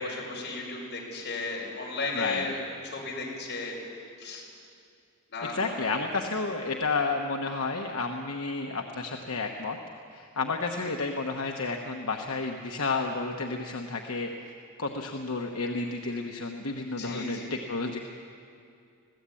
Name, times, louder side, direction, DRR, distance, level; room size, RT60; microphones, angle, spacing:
voice 1, 0.0-2.6 2.9-3.8 4.2-4.4 5.3-6.1 17.0-17.5, left 3 dB, 55° left, -3 dB, 5.8 m, -35 dB
voice 2, 2.1-2.5 5.4-9.8 10.1-14.5 14.8-18.0, left 3 dB, 80° left, 2 dB, 1.1 m, -31 dB
20.5 x 16.0 x 8.5 m, 2.4 s
head